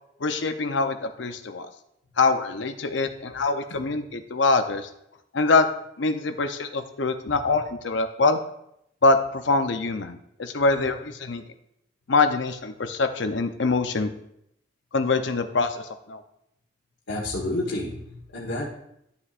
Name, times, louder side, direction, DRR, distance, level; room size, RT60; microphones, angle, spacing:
voice 1, 0.2-1.7 2.2-4.9 5.3-5.7 6.0-8.4 9.0-11.4 12.1-14.1 14.9-16.2, left 3 dB, 65° left, 8 dB, 0.7 m, -24 dB
voice 2, 3.0-3.4 3.7-4.1 7.3-7.6 17.1-18.7, left 1 dB, 90° left, -5 dB, 1.5 m, -32 dB
11.0 x 7.0 x 2.5 m, 0.77 s
head